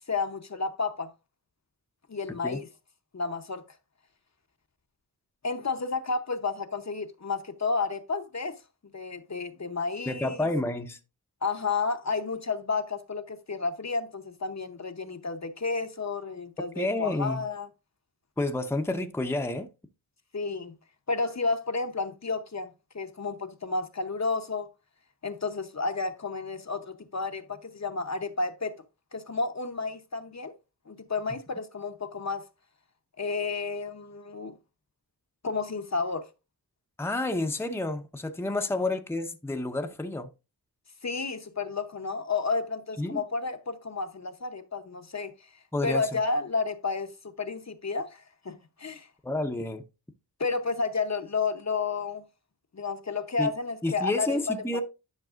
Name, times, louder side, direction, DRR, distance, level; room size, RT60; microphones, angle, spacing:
voice 1, 0.1-1.1 2.1-2.7 3.1-3.6 5.4-8.5 8.9-10.5 11.4-17.7 20.3-20.7 21.1-24.7 25.2-28.8 29.1-30.5 30.9-32.4 33.2-34.5 35.4-36.3 41.0-45.5 45.8-49.1 50.4-52.2 52.7-54.6, left 4 dB, 40° left, 0.8 m, -31 dB
voice 2, 10.1-11.0 16.8-17.4 18.4-19.7 37.0-40.3 43.0-43.2 45.7-46.2 49.2-49.8 53.4-53.5 53.8-54.8, left 2 dB, 5° left, 0.7 m, -30 dB
10.5 x 5.9 x 2.4 m
wide cardioid pair, 80°, 40 cm